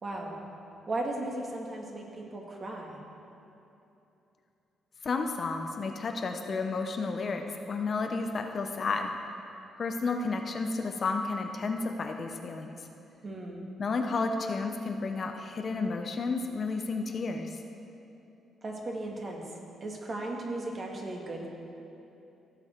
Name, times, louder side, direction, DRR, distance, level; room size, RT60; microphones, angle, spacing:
voice 1, 0.0-0.3 0.9-3.0 13.2-13.6 18.6-19.4 19.8-21.5, right 2 dB, 35° right, 0 dB, 1.8 m, -36 dB
voice 2, 5.0-9.1 9.8-12.8 13.8-17.5, left 4 dB, 45° left, 5 dB, 0.8 m, -32 dB
16.0 x 7.0 x 4.5 m, 2.9 s
cardioid pair, 105°, 0 cm